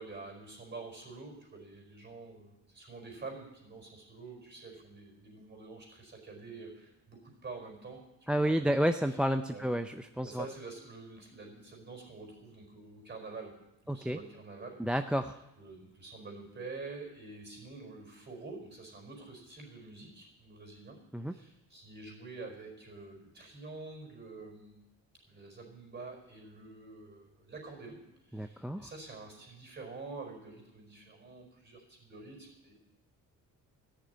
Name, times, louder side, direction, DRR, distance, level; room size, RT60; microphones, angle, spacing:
voice 1, 0.0-8.7 9.1-9.2 9.5-9.7 10.2-13.6 13.8-15.0 15.6-21.0 21.3-24.8 25.3-28.0 28.3-32.7, right 3 dB, 30° right, 2 dB, 4.8 m, -47 dB
voice 2, 8.3-10.5 13.9-14.2 14.8-15.4 21.1-21.3 28.3-28.9, equal, 5° right, 7 dB, 0.4 m, -30 dB
14.0 x 6.8 x 9.5 m, 0.92 s
cardioid pair, 100°, 35 cm